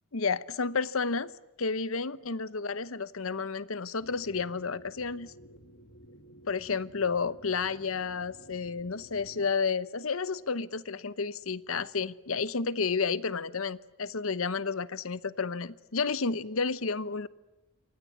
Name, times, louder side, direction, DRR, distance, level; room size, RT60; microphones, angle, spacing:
voice 1, 0.1-1.3 1.6-5.3 6.5-17.3, left 5 dB, 75° left, 0.9 m, -31 dB
sound 1, 4.0-9.5, equal, 55° left, 1.7 m, -53 dB
27.0 x 24.5 x 8.6 m
head